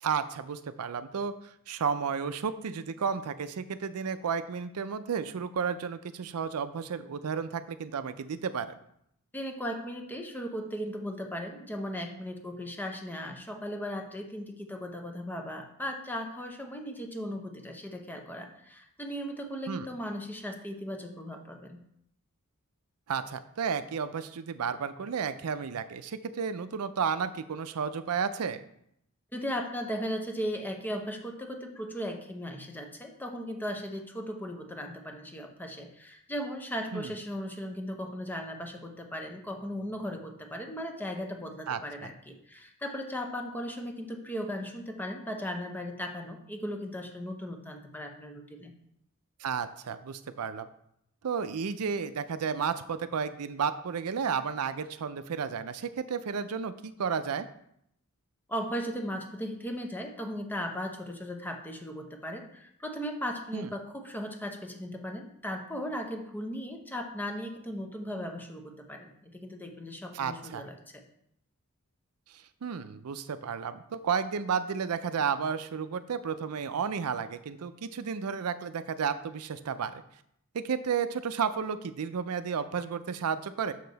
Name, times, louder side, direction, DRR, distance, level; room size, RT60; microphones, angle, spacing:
voice 1, 0.0-8.7 19.7-19.8 23.1-28.6 36.9-37.2 41.7-41.8 49.4-50.7 51.2-57.5 63.5-63.7 70.1-70.7 72.3-80.0 80.5-83.7, right 6 dB, 80° right, 12 dB, 0.5 m, -32 dB
voice 2, 9.3-21.8 29.3-48.7 58.5-71.0, equal, 10° left, 3 dB, 0.8 m, -37 dB
6.7 x 6.6 x 4.0 m, 0.73 s
head